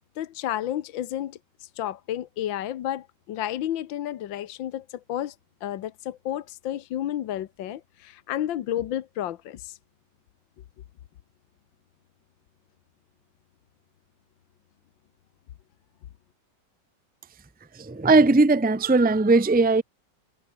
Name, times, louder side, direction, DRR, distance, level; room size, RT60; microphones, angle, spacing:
voice 1, 0.2-5.3 5.6-9.8, left 12 dB, 80° left, 1.7 m, -31 dB
voice 2, 17.8-19.8, right 3 dB, 5° right, 0.7 m, -19 dB
omnidirectional pair, 2.1 m